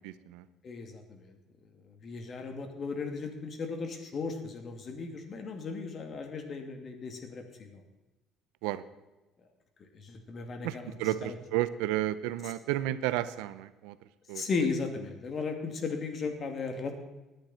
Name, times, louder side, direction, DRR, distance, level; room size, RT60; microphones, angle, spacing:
voice 1, 0.0-0.5 8.6-8.8 10.6-14.0 14.3-14.4, right 14 dB, 90° right, 15 dB, 0.7 m, -32 dB
voice 2, 0.6-1.3 2.0-7.8 9.9-10.9 11.2-11.3 14.3-17.0, left 4 dB, 45° left, 5 dB, 2.6 m, -36 dB
19.0 x 10.5 x 4.4 m, 1.1 s
supercardioid pair, 95°, 0 cm